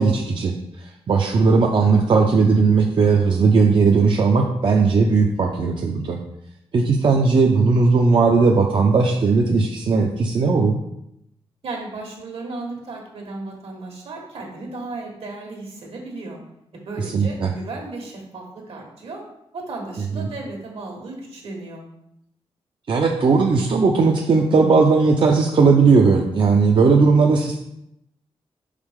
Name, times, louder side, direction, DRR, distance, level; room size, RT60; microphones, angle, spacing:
voice 1, 0.0-6.2 6.7-10.8 17.1-17.5 20.2-20.3 22.9-27.6, right 4 dB, 50° right, 0 dB, 0.5 m, -17 dB
voice 2, 11.6-16.4 16.7-19.2 19.5-21.8, right 3 dB, 75° right, 0 dB, 1.5 m, -35 dB
5.3 x 4.9 x 3.6 m, 0.81 s
wide cardioid pair, 120°, 10 cm